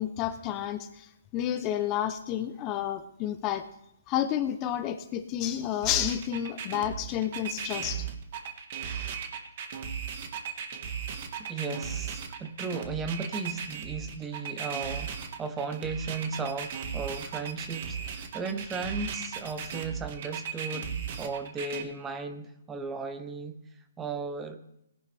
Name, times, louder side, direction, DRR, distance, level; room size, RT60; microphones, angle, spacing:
voice 1, 0.0-3.6 4.1-8.1, left 11 dB, 25° left, 10 dB, 0.7 m, -30 dB
sound 1, 5.8-21.8, right 7 dB, 40° right, 1.6 m, -36 dB
voice 2, 11.4-23.6 24.0-24.6, right 4 dB, 10° right, 9 dB, 0.9 m, -36 dB
18.0 x 10.5 x 3.4 m, 0.81 s
hypercardioid pair, 155°, 0 cm